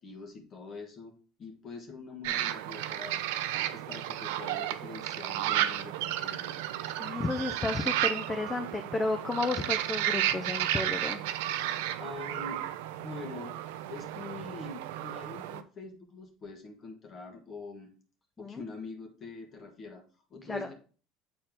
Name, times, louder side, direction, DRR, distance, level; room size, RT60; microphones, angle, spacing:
voice 1, 0.0-3.2 3.7-6.6 12.0-12.6 12.9-13.6 13.9-18.0 18.4-20.7, left 3 dB, 40° left, 3 dB, 1.6 m, -44 dB
sound 1, 2.2-15.6, right 12 dB, 70° right, 0.4 m, -33 dB
voice 2, 7.0-11.2 18.4-18.6 20.5-20.6, left 3 dB, 20° left, 6 dB, 0.6 m, -32 dB
7.5 x 4.3 x 3.8 m, 0.39 s
hypercardioid pair, 70°, 0 cm